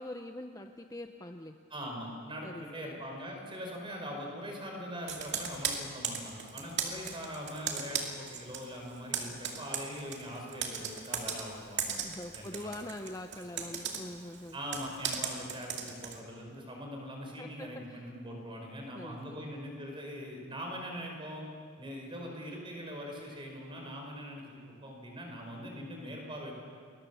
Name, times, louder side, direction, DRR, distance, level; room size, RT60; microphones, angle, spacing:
voice 1, 0.0-1.6 2.4-3.0 12.0-14.6 17.4-18.1 18.9-19.5, left 1 dB, 15° left, 6 dB, 0.6 m, -44 dB
voice 2, 1.7-12.0 12.3-12.7 14.5-21.4 21.8-26.6, equal, 25° right, 1 dB, 5.0 m, -42 dB
Computer keyboard, 5.1-8.7 8.9-16.2, right 7 dB, 50° right, 2.6 m, -37 dB
30.0 x 21.5 x 7.0 m, 2.3 s
head